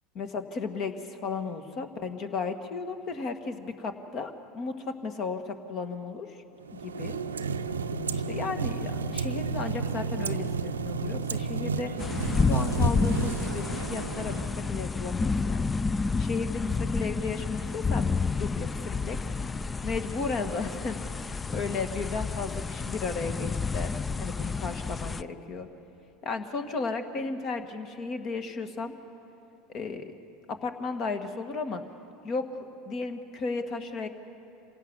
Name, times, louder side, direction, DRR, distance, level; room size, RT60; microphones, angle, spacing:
voice 1, 0.2-6.4 6.7-7.2 8.1-15.7 16.2-19.2 19.8-21.0 21.5-25.7 26.2-28.9 29.7-30.1 30.5-31.8 32.2-34.1, left 4 dB, 45° left, 7 dB, 1.8 m, -34 dB
sound 1, 6.6-14.9, right 4 dB, 90° right, 0.6 m, -32 dB
sound 2, 12.0-25.2, left 4 dB, 20° left, 0.4 m, -30 dB
26.5 x 17.5 x 7.4 m, 2.7 s
hypercardioid pair, 80°, 0 cm